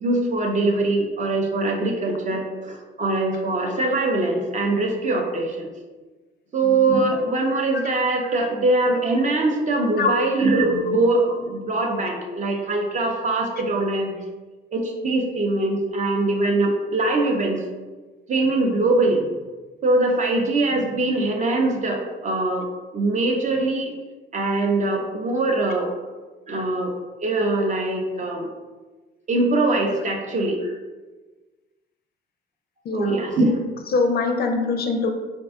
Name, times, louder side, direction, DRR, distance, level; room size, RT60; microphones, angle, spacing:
voice 1, 0.0-5.7 6.5-14.2 14.7-17.6 18.3-19.4 19.8-22.7 22.9-23.9 24.3-25.9 26.5-26.9 27.2-28.5 29.3-30.8 32.9-33.6, right 2 dB, 40° right, 2 dB, 0.5 m, -22 dB
voice 2, 33.9-35.1, left 4 dB, 50° left, 5 dB, 0.4 m, -22 dB
2.5 x 2.2 x 3.5 m, 1.3 s
cardioid pair, 90°, 20 cm